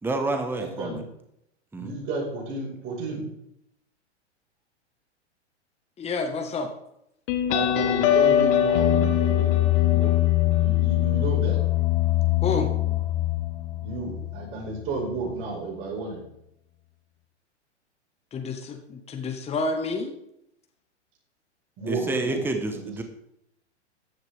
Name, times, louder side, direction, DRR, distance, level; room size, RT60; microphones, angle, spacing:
voice 1, 0.0-1.0 1.7-1.9 21.9-23.0, right 2 dB, 5° right, 5 dB, 1.2 m, -29 dB
voice 2, 0.6-1.0 1.8-3.2 7.5-10.1 10.5-11.6 13.8-16.2 21.8-22.4 22.7-23.0, right 3 dB, 35° right, -2 dB, 5.1 m, -32 dB
voice 3, 6.0-6.7 12.4-12.7 18.3-20.1, left 3 dB, 15° left, 4 dB, 1.5 m, -29 dB
sound 1, 7.3-14.4, left 12 dB, 45° left, 1.5 m, -22 dB
14.5 x 10.5 x 3.6 m, 0.78 s
figure-of-eight pair, 105°, 35 cm